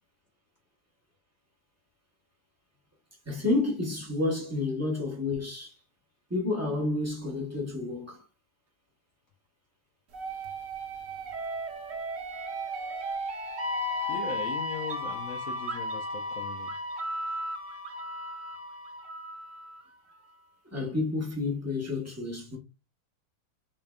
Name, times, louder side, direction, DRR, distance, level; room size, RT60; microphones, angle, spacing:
voice 1, 3.3-5.7 6.3-8.2 20.7-22.6, left 2 dB, 15° right, 0.6 m, -30 dB
sound 1, 10.1-19.8, equal, 55° right, 0.9 m, -35 dB
voice 2, 14.1-16.7, left 4 dB, 75° left, 0.7 m, -39 dB
4.5 x 3.3 x 2.3 m
omnidirectional pair, 2.2 m